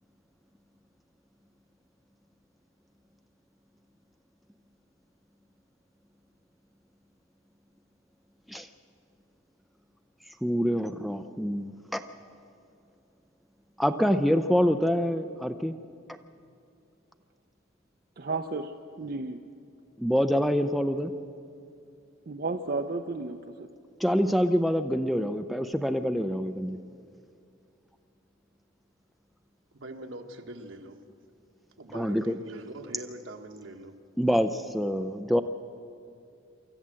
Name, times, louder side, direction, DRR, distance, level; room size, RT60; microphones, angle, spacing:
voice 1, 10.4-12.0 13.8-15.7 20.0-21.1 24.0-26.8 31.9-32.4 34.2-35.4, equal, ahead, 0.5 m, -26 dB
voice 2, 18.2-18.6 19.0-19.4 22.3-23.7, right 3 dB, 45° right, 0.6 m, -32 dB
voice 3, 29.7-31.0 31.8-34.0, right 1 dB, 75° right, 1.4 m, -42 dB
24.5 x 14.0 x 7.5 m
head